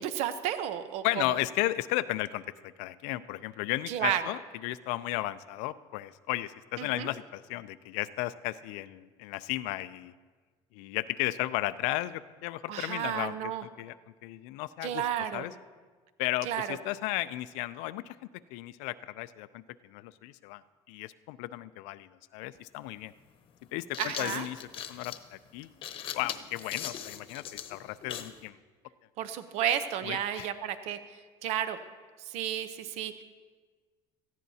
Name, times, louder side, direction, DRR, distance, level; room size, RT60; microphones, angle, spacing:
voice 1, 0.0-1.2 3.9-4.2 6.8-7.1 12.7-13.6 14.8-15.5 16.4-16.8 24.0-24.5 29.2-31.0 31.4-31.8 32.3-33.2, right 10 dB, 70° right, 11 dB, 0.7 m, -32 dB
voice 2, 1.0-10.1 10.7-14.0 14.2-15.0 15.3-15.5 16.2-18.2 18.5-20.6 20.9-23.1 23.7-24.6 24.9-25.7 26.1-28.6 30.1-30.5, left 16 dB, 90° left, 13 dB, 0.4 m, -34 dB
sound 1, 22.5-22.6 23.6-28.4, left 9 dB, 50° left, 0.9 m, -40 dB
18.0 x 14.5 x 2.8 m, 1.4 s
cardioid pair, 135°, 12 cm